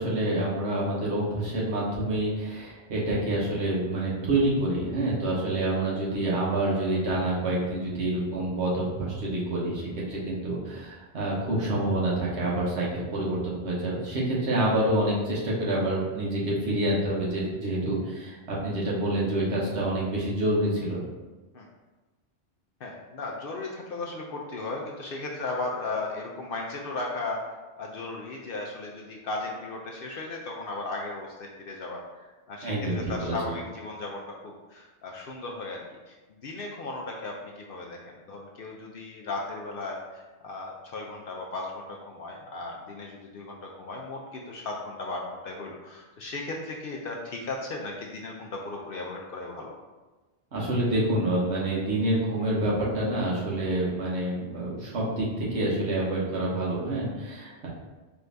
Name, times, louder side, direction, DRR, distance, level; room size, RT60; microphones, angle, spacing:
voice 1, 0.0-21.0 32.6-33.4 50.5-57.7, right 1 dB, 65° right, -6 dB, 1.4 m, -27 dB
voice 2, 22.8-27.4 27.8-32.0 32.5-49.7, left 2 dB, 60° left, -1 dB, 0.6 m, -36 dB
4.6 x 2.6 x 3.3 m, 1.2 s
omnidirectional pair, 1.2 m